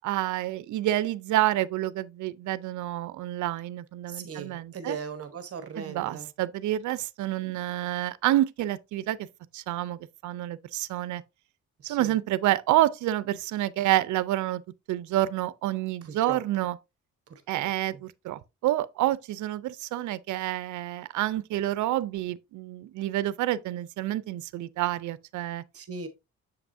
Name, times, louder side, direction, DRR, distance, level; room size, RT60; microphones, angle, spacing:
voice 1, 0.0-5.0 5.8-9.2 9.5-11.2 11.8-14.6 14.9-16.8 17.5-25.6, right 14 dB, 75° right, 0.5 m, -28 dB
voice 2, 4.1-6.3 11.8-12.1 16.0-16.4 17.6-17.7 25.7-26.1, right 5 dB, 50° right, 1.1 m, -38 dB
7.6 x 5.8 x 2.6 m
cardioid pair, 90°, 30 cm